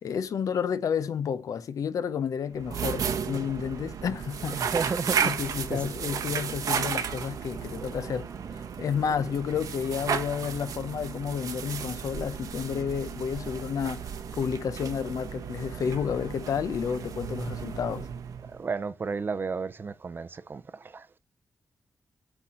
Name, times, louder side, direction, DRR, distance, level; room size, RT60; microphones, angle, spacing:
voice 1, 0.0-4.7 5.2-18.1, left 7 dB, 70° left, 0.7 m, -31 dB
sound 1, 2.5-18.7, right 7 dB, 80° right, 1.1 m, -34 dB
voice 2, 4.5-6.2 6.6-6.7 7.1-9.2 18.5-21.2, right 4 dB, 35° right, 0.6 m, -35 dB
8.0 x 4.1 x 4.3 m
wide cardioid pair, 145°, 6 cm